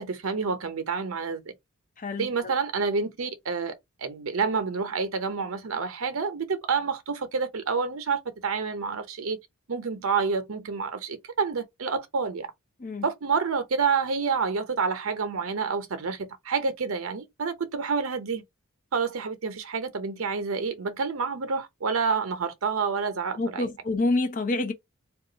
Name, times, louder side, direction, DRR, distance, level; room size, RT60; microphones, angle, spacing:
voice 1, 0.0-1.4 2.2-3.7 4.0-9.4 9.7-12.5 13.0-18.4 18.9-23.7, right 5 dB, 65° right, 0.6 m, -28 dB
voice 2, 2.0-2.5 12.8-13.0 23.4-24.7, left 2 dB, 40° left, 0.5 m, -27 dB
2.4 x 2.3 x 3.8 m
head